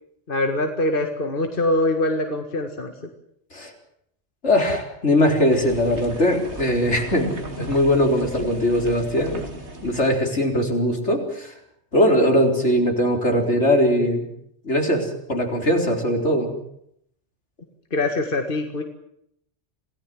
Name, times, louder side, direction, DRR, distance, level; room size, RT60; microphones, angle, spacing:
voice 1, 0.3-2.9 17.9-18.8, left 2 dB, 45° left, 4 dB, 2.1 m, -23 dB
voice 2, 4.4-9.5 9.8-11.5 11.9-14.2 14.6-16.5, equal, 70° left, 3 dB, 4.6 m, -20 dB
sound 1, 5.5-10.1, right 2 dB, 65° right, 3.5 m, -37 dB
27.5 x 18.0 x 7.7 m, 0.73 s
omnidirectional pair, 1.2 m